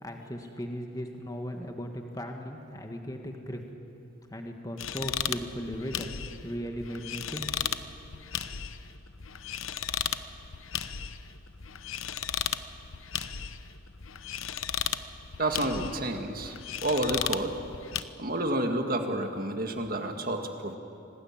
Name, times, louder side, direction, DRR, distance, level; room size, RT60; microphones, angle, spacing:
voice 1, 0.0-3.6 4.3-6.1 6.4-7.8, equal, 15° left, 3 dB, 1.7 m, -37 dB
sound 1, 4.8-18.0, left 9 dB, 75° left, 0.9 m, -36 dB
voice 2, 15.4-16.6 16.8-17.5 18.2-20.8, right 1 dB, 40° right, 5 dB, 2.0 m, -29 dB
26.0 x 19.0 x 9.0 m, 2.9 s
head